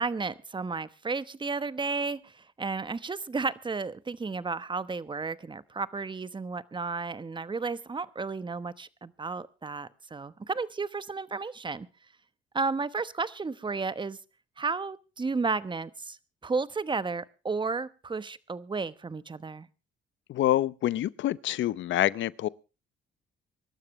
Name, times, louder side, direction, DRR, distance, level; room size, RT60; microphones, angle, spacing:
voice 1, 0.0-11.9 12.5-14.2 14.6-16.2 16.4-19.7, right 4 dB, 25° right, 1.0 m, -33 dB
voice 2, 20.3-22.5, left 13 dB, 75° left, 0.7 m, -26 dB
24.5 x 12.5 x 3.2 m
cardioid pair, 90°, 20 cm